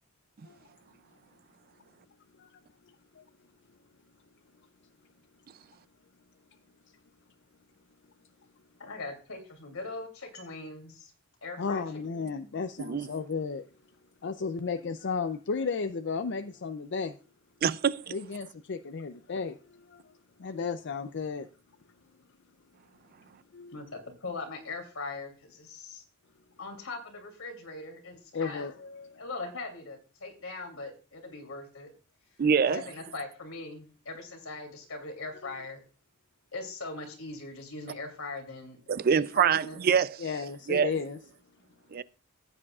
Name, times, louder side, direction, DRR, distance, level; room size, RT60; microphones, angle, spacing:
voice 1, 8.8-11.1 11.4-11.8 12.2-12.4 23.7-26.0 26.6-28.7 29.2-31.9 32.6-35.8 36.5-38.8 39.1-39.8, left 3 dB, 85° left, 2.8 m, -40 dB
voice 2, 11.6-13.7 14.2-17.2 18.1-21.5 23.5-23.8 28.3-29.2 35.4-35.5 40.2-41.2, left 5 dB, 55° left, 0.5 m, -34 dB
voice 3, 17.6-18.1 32.4-32.8 38.9-40.2 40.7-40.9 41.9-42.0, right 7 dB, 45° right, 0.4 m, -25 dB
15.0 x 8.6 x 2.4 m
head